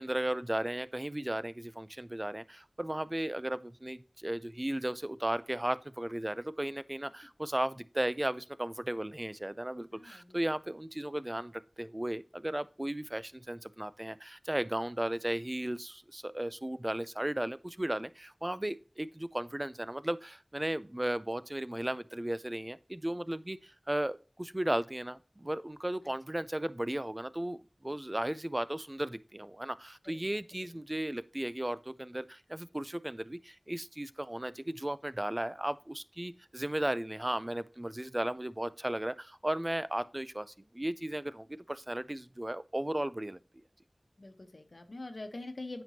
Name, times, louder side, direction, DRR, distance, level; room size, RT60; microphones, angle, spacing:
voice 1, 0.0-43.4, right 1 dB, 30° right, 0.5 m, -35 dB
voice 2, 9.9-10.4 30.0-30.2 30.5-30.7 44.2-45.8, left 2 dB, 75° left, 1.0 m, -44 dB
9.0 x 5.3 x 2.8 m
wide cardioid pair, 45°, 0 cm